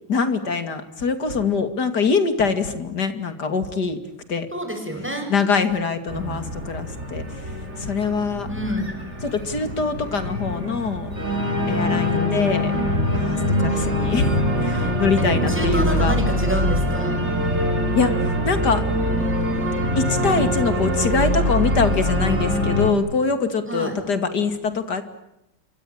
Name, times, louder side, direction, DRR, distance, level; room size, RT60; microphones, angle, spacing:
voice 1, 0.1-4.0 4.3-4.5 5.3-7.2 7.8-8.5 9.2-11.1 11.7-12.7 13.1-16.2 17.9-18.1 18.4-18.8 20.0-25.0, left 4 dB, 55° left, 10 dB, 3.0 m, -23 dB
voice 2, 4.5-5.3 8.5-8.9 15.2-17.2 23.7-24.0, equal, 5° right, 4 dB, 7.5 m, -28 dB
Organ, 6.1-22.9, equal, 35° right, 4.1 m, -23 dB
28.0 x 24.0 x 8.8 m, 0.86 s
omnidirectional pair, 2.1 m